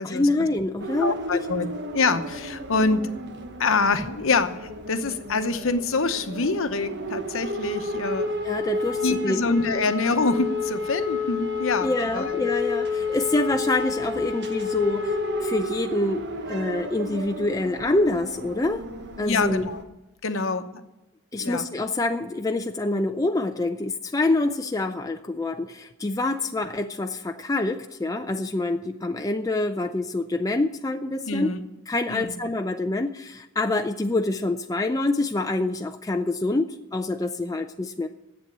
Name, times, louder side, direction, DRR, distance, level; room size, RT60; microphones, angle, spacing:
voice 1, 0.0-1.4 8.4-9.8 11.8-18.8 19.2-19.7 21.3-31.5 31.9-38.1, left 2 dB, 15° left, 5 dB, 0.4 m, -26 dB
sound 1, 0.8-19.8, left 3 dB, 55° right, 1.2 m, -31 dB
voice 2, 1.0-1.7 1.9-3.0 3.6-8.3 9.0-11.9 12.1-12.4 19.2-19.8 20.2-20.7 21.4-21.7 31.3-31.6 32.1-32.3, left 3 dB, 70° left, 9 dB, 0.9 m, -25 dB
10.5 x 8.1 x 8.6 m, 1.0 s
head